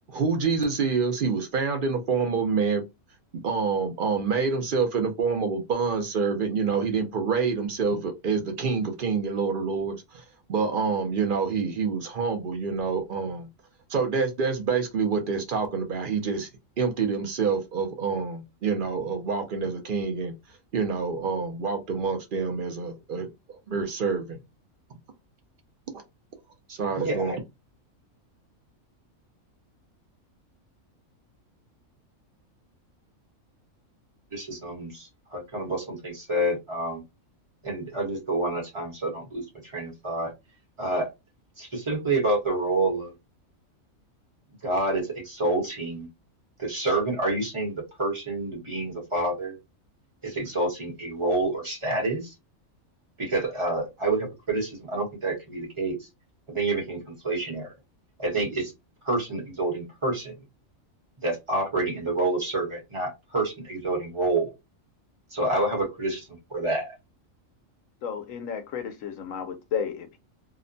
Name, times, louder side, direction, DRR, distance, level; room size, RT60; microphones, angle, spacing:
voice 1, 0.1-2.8 3.4-10.2 10.5-13.5 13.9-16.5 16.8-20.3 20.7-23.3 23.7-24.4 26.7-27.3, right 5 dB, 60° right, 0.5 m, -27 dB
voice 2, 27.0-27.4 34.3-37.0 37.6-40.3 40.8-41.1 41.6-43.1 44.6-46.1 46.6-49.6 50.2-52.3 53.2-56.0 56.5-57.7 58.2-58.7 59.0-60.3 61.2-64.5 65.3-66.9, right 2 dB, 25° right, 1.0 m, -28 dB
voice 3, 68.0-70.2, left 7 dB, 75° left, 1.0 m, -32 dB
2.8 x 2.1 x 2.5 m
omnidirectional pair, 1.4 m